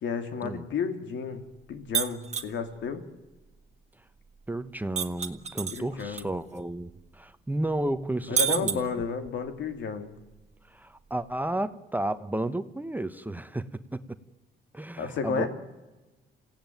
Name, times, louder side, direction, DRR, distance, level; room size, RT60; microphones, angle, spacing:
voice 1, 0.0-3.0 5.7-6.3 8.3-10.1 15.0-15.5, left 6 dB, 75° left, 2.5 m, -32 dB
sound 1, 1.9-2.5 5.0-6.2 6.6-6.7 8.4-9.3, right 8 dB, 35° right, 1.6 m, -28 dB
voice 2, 4.5-8.8 10.7-14.2 14.7-15.5, right 1 dB, 10° right, 1.0 m, -32 dB
28.0 x 16.0 x 9.2 m
cardioid pair, 105°, 19 cm